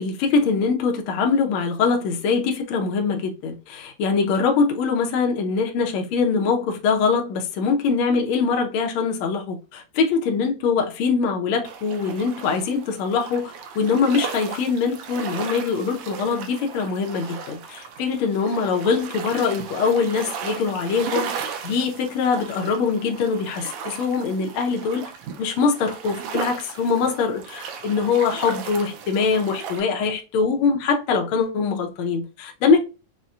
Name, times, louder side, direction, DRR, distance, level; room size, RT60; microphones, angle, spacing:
voice 1, 0.0-21.3 21.6-25.1 25.4-32.8, left 5 dB, 85° left, 1.2 m, -23 dB
sound 1, 11.6-29.8, right 6 dB, 75° right, 1.8 m, -36 dB
5.7 x 2.1 x 2.4 m
omnidirectional pair, 3.4 m